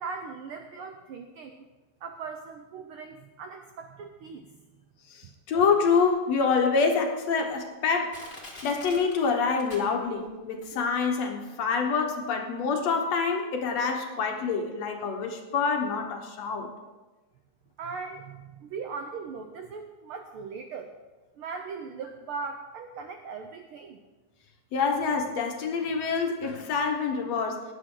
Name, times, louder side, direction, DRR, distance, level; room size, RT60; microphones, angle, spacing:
voice 1, 0.0-1.6 2.0-4.6 17.8-20.9 21.4-24.0, right 5 dB, 80° right, 6 dB, 1.2 m, -39 dB
voice 2, 5.1-8.2 8.6-16.7 24.7-27.6, left 5 dB, 65° left, 3 dB, 2.3 m, -26 dB
Crushing, 6.0-6.1 6.8-6.9 7.5-7.6 8.1-10.3 10.6-10.7, left 1 dB, 20° left, 2.0 m, -45 dB
17.0 x 9.9 x 3.8 m, 1.2 s
omnidirectional pair, 3.4 m